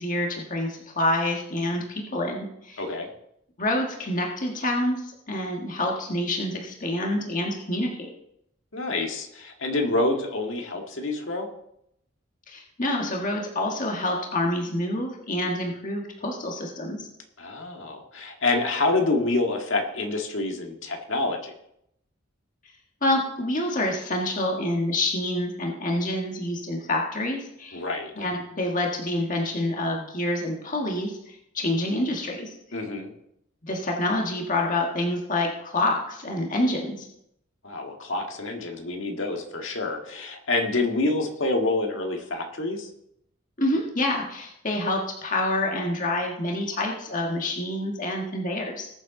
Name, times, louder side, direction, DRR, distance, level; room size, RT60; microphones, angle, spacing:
voice 1, 0.0-2.8 3.6-8.1 12.5-17.1 23.0-27.8 28.2-32.6 33.6-37.1 43.6-48.9, left 1 dB, 40° left, 0 dB, 1.6 m, -27 dB
voice 2, 2.8-3.1 8.7-11.5 17.4-21.5 27.7-28.1 32.7-33.1 37.6-42.9, left 2 dB, 65° left, 3 dB, 1.9 m, -27 dB
20.0 x 7.2 x 3.9 m, 0.76 s
head